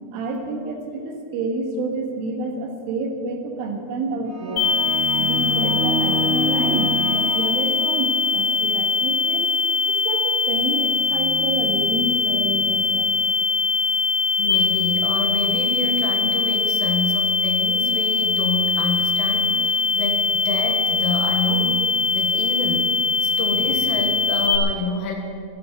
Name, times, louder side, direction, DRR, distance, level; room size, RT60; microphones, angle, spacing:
voice 1, 0.1-4.7 5.2-9.5 9.9-14.3, right 3 dB, 80° right, 2 dB, 4.2 m, -29 dB
sound 1, 4.3-8.3, right 2 dB, 60° right, 2.1 m, -28 dB
sound 2, 4.6-24.6, left 4 dB, 55° left, 4.3 m, -21 dB
voice 2, 14.4-21.8 22.1-22.9 23.2-25.1, left 2 dB, 80° left, 2 dB, 4.3 m, -27 dB
24.5 x 12.0 x 4.6 m, 2.4 s
omnidirectional pair, 5.6 m